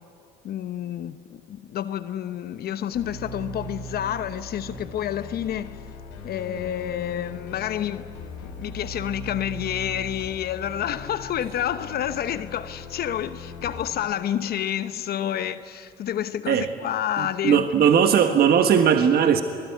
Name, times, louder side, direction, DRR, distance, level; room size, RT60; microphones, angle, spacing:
voice 1, 0.4-5.8 6.2-8.1 8.4-17.6, left 10 dB, 60° left, 1.0 m, -29 dB
sound 1, 2.9-13.8, left 2 dB, 90° left, 4.4 m, -39 dB
voice 2, 17.2-19.4, right 8 dB, 60° right, 1.4 m, -19 dB
27.0 x 20.5 x 9.5 m
supercardioid pair, 70°, 18 cm